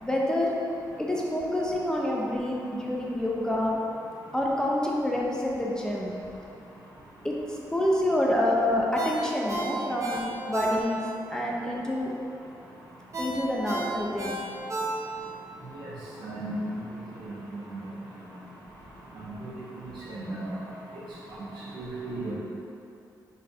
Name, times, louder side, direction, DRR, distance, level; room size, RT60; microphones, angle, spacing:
voice 1, 0.0-0.6 1.0-3.8 4.3-6.1 7.2-12.1 13.2-14.4, left 1 dB, 10° left, -3 dB, 0.5 m, -27 dB
Ringtone, 9.0-11.2 11.6-11.7 13.1-15.4 15.8-15.9, right 1 dB, 45° right, 0.8 m, -33 dB
voice 2, 16.2-16.6 17.2-17.8 19.2-19.5 20.1-20.5 21.7-22.3, right 2 dB, 80° right, -8 dB, 1.2 m, -36 dB
4.0 x 2.5 x 4.1 m, 2.7 s
cardioid pair, 105°, 8 cm